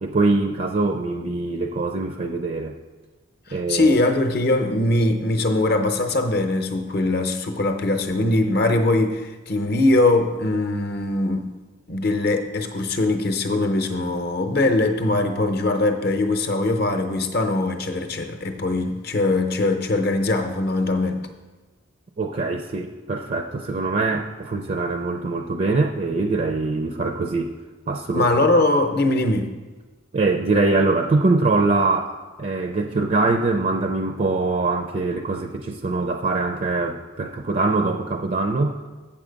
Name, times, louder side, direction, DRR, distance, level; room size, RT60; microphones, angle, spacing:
voice 1, 0.0-2.7 3.5-3.9 22.2-27.5 27.9-28.6 30.1-32.1 32.4-38.8, right 3 dB, 40° right, 4 dB, 0.5 m, -23 dB
voice 2, 3.7-11.5 11.9-21.3 28.1-29.5, left 2 dB, 50° left, 7 dB, 0.7 m, -21 dB
7.3 x 7.3 x 5.1 m, 1.3 s
head